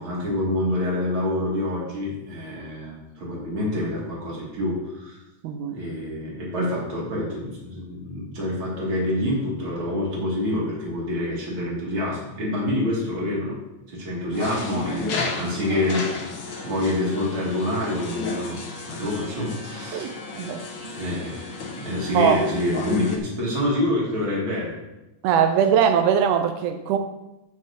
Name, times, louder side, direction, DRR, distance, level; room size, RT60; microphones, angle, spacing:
voice 1, 0.0-5.2 5.7-13.6 13.9-18.6 18.9-20.1 21.0-21.5 21.8-24.8, left 1 dB, 40° right, -5 dB, 3.2 m, -27 dB
voice 2, 5.4-5.8 19.9-20.9 22.1-22.4 25.2-27.0, right 8 dB, 90° right, 7 dB, 2.1 m, -21 dB
sound 1, 14.3-23.2, left 3 dB, 80° left, 0.9 m, -33 dB
14.5 x 6.1 x 2.9 m, 0.98 s
omnidirectional pair, 3.5 m